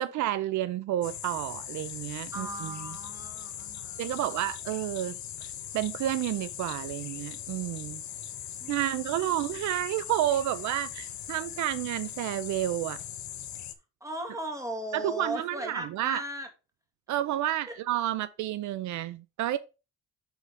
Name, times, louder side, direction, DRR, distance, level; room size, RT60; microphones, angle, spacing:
voice 1, 0.0-3.0 4.0-5.5 5.7-8.0 8.7-13.0 14.9-16.2 17.1-19.6, right 13 dB, 75° right, 0.5 m, -30 dB
sound 1, 1.0-13.7, left 10 dB, 70° left, 0.9 m, -40 dB
voice 2, 2.3-4.2 8.6-9.2 14.0-16.5 17.7-17.8, right 1 dB, 10° right, 2.1 m, -37 dB
5.9 x 4.1 x 4.9 m
cardioid pair, 90°, 30 cm